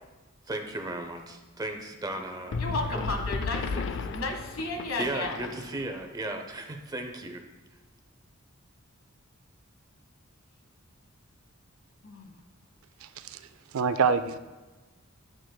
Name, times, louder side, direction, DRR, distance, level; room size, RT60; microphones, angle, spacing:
voice 1, 0.5-2.6 2.9-3.2 3.7-3.8 5.0-7.4, right 1 dB, 20° right, 4 dB, 0.6 m, -35 dB
sound 1, 2.5-6.0, left 4 dB, 60° left, 0.4 m, -34 dB
voice 2, 2.6-3.8 4.1-5.4 12.0-12.3, left 2 dB, 80° left, 3 dB, 1.3 m, -33 dB
voice 3, 13.0-13.4 13.7-14.4, right 5 dB, 70° right, 11 dB, 0.4 m, -26 dB
8.9 x 7.6 x 2.2 m, 1.2 s
head